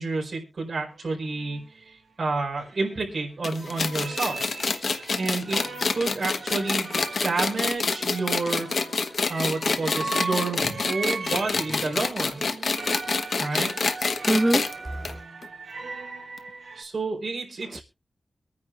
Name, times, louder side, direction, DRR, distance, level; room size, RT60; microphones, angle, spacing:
voice 1, 0.0-4.4 5.1-5.6 5.9-8.7 9.3-12.4 13.4-13.7 16.7-17.8, right 3 dB, 55° right, 4.4 m, -29 dB
sound 1, 0.9-1.0 1.3-1.7 2.6-3.3 3.6-16.8, right 4 dB, 75° right, 1.8 m, -38 dB
sound 2, 3.4-14.7 15.0-15.1 15.4-15.5 16.4-16.5, left 4 dB, 65° left, 1.1 m, -27 dB
voice 2, 14.2-15.2 17.7-17.8, right 1 dB, 15° right, 0.6 m, -25 dB
24.0 x 9.6 x 2.5 m
wide cardioid pair, 120°, 0 cm